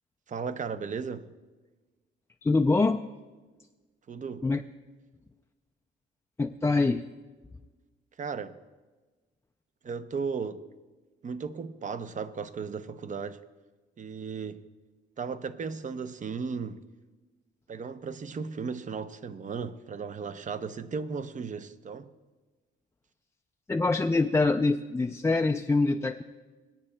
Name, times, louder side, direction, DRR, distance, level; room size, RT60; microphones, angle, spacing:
voice 1, 0.3-1.3 4.1-4.5 8.2-8.6 9.8-10.6 11.2-13.4 14.0-14.6 15.2-16.8 17.7-22.1, right 5 dB, 40° right, 0.7 m, -35 dB
voice 2, 2.4-3.0 4.4-4.6 6.4-7.0 23.7-26.2, left 3 dB, 15° left, 0.4 m, -24 dB
25.5 x 8.7 x 2.2 m
cardioid pair, 90°, 20 cm